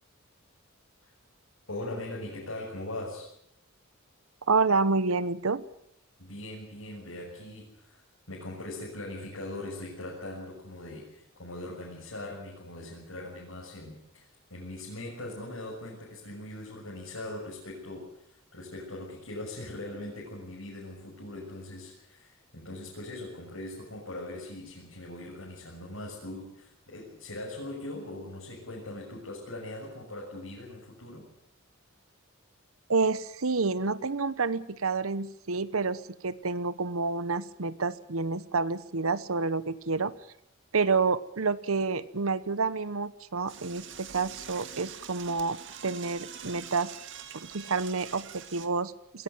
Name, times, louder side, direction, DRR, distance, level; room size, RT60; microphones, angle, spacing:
voice 1, 1.7-3.3 6.2-8.0 8.3-31.3, left 1 dB, 75° left, -3 dB, 6.8 m, -41 dB
voice 2, 4.5-5.6 32.9-40.1 40.7-45.6 45.8-46.9 47.3-49.2, right 4 dB, 80° right, 15 dB, 1.0 m, -29 dB
Door / Toilet flush, 43.5-48.7, right 8 dB, 60° right, 2.0 m, -44 dB
22.0 x 16.5 x 9.0 m, 0.76 s
head